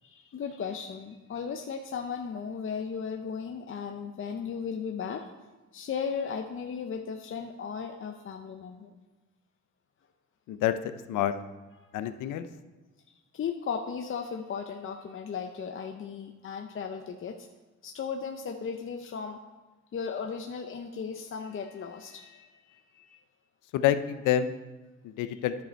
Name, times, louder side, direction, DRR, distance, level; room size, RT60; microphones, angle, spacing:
voice 1, 0.0-5.3 5.7-8.9 11.8-11.9 13.3-17.5 17.8-19.4 19.9-23.2 25.3-25.4, left 6 dB, 45° left, 4 dB, 0.7 m, -36 dB
voice 2, 11.9-12.5 23.7-24.5 25.0-25.5, left 11 dB, 85° left, 11 dB, 0.7 m, -27 dB
10.5 x 6.8 x 4.5 m, 1.2 s
cardioid pair, 90°, 30 cm